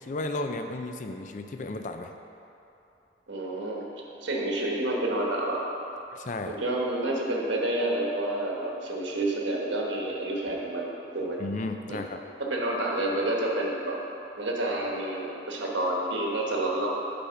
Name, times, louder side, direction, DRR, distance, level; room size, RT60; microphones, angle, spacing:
voice 1, 0.0-2.1 6.1-6.6 11.4-12.2, left 2 dB, 40° left, 6 dB, 0.4 m, -34 dB
voice 2, 3.3-3.9 4.2-5.6 6.5-11.4 11.9-12.0 12.5-14.0 14.4-16.9, right 1 dB, 85° right, -2 dB, 1.2 m, -29 dB
8.3 x 4.3 x 5.7 m, 2.9 s
head